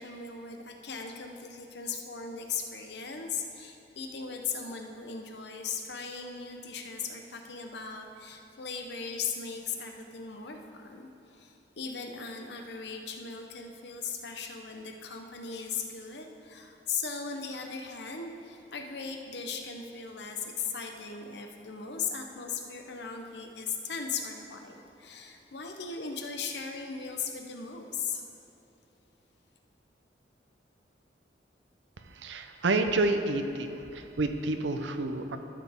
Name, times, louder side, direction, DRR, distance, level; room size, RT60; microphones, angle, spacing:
voice 1, 0.0-28.2, left 5 dB, 65° left, 4 dB, 0.8 m, -38 dB
voice 2, 32.0-35.4, right 2 dB, 85° right, 7 dB, 0.6 m, -29 dB
13.0 x 7.2 x 3.6 m, 3.0 s
head